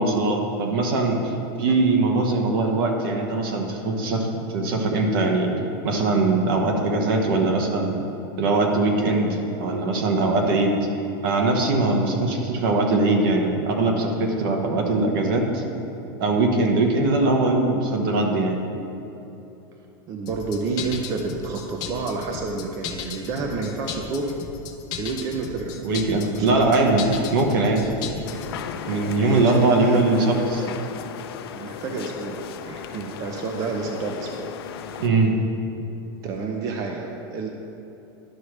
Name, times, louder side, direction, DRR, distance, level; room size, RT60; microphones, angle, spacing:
voice 1, 0.0-5.5 5.8-8.0 8.4-10.8 11.2-15.6 16.2-18.6 25.8-27.9 28.9-30.6 35.0-35.4, right 2 dB, 65° right, 2 dB, 1.2 m, -21 dB
voice 2, 20.1-24.4 24.9-25.7 26.2-26.7 29.2-30.9 31.5-34.5 34.8-35.0 36.2-37.5, right 4 dB, 25° right, 2 dB, 0.5 m, -30 dB
sound 1, 20.3-28.5, left 7 dB, 30° left, 0.7 m, -35 dB
sound 2, 28.2-35.1, left 8 dB, 85° left, 0.5 m, -36 dB
11.0 x 6.0 x 3.2 m, 2.9 s
supercardioid pair, 165°, 13 cm